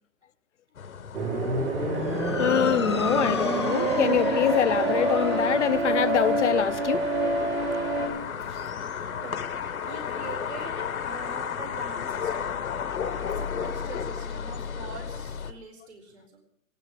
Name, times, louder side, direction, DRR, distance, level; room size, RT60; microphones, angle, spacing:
sound 1, 0.8-15.5, left 7 dB, 80° left, 1.4 m, -34 dB
sound 2, 1.1-8.1, right 2 dB, 80° right, 6.0 m, -26 dB
Motor vehicle (road) / Siren, 1.9-10.5, left 5 dB, 20° left, 0.7 m, -37 dB
voice 1, 2.4-7.1 8.5-8.6, left 10 dB, 55° left, 0.7 m, -25 dB
voice 2, 7.9-9.4 9.9-12.6 13.2-16.4, right 5 dB, 50° right, 4.5 m, -44 dB
18.5 x 16.0 x 4.9 m
hypercardioid pair, 175°, 42 cm